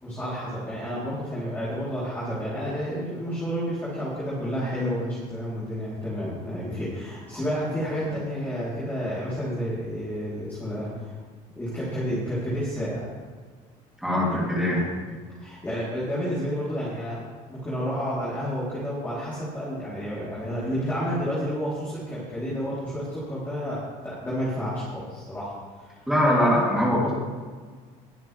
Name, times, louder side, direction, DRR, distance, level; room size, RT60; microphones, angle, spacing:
voice 1, 0.0-11.2 11.6-13.1 15.4-17.2 17.5-26.0, equal, 15° left, -10 dB, 3.8 m, -30 dB
voice 2, 14.0-14.9 26.1-27.1, equal, 5° right, -6 dB, 3.3 m, -22 dB
21.0 x 9.3 x 3.5 m, 1.5 s
cardioid pair, 155°, 15 cm